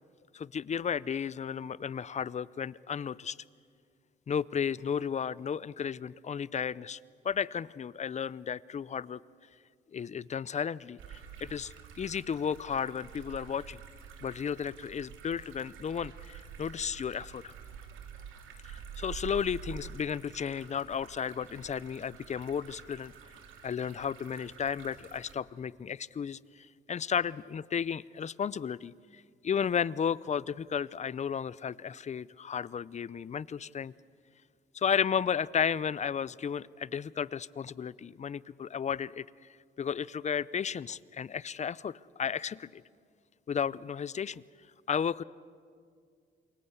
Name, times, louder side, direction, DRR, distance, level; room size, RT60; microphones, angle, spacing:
voice 1, 0.3-3.4 4.3-7.0 7.2-9.2 9.9-13.8 14.2-17.5 18.6-23.1 23.6-33.9 34.7-39.2 39.8-42.8 43.5-44.4 44.9-45.2, left 7 dB, 35° left, 21 dB, 0.6 m, -33 dB
sound 1, 11.0-25.4, right 7 dB, 80° right, 2.6 m, -48 dB
27.5 x 23.0 x 8.1 m, 2.2 s
cardioid pair, 90°, 20 cm